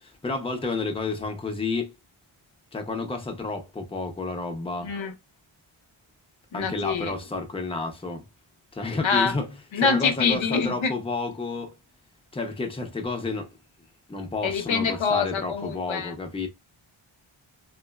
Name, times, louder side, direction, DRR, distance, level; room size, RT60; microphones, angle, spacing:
voice 1, 0.0-1.9 2.7-4.9 6.5-8.3 8.7-9.5 9.8-11.7 12.3-13.5 14.1-16.5, left 3 dB, 10° left, 0.5 m, -30 dB
voice 2, 4.8-5.1 6.5-7.1 9.0-9.3 9.7-10.9 14.4-16.1, left 5 dB, 70° left, 0.6 m, -25 dB
3.8 x 2.0 x 2.2 m
wide cardioid pair, 85°, 50 cm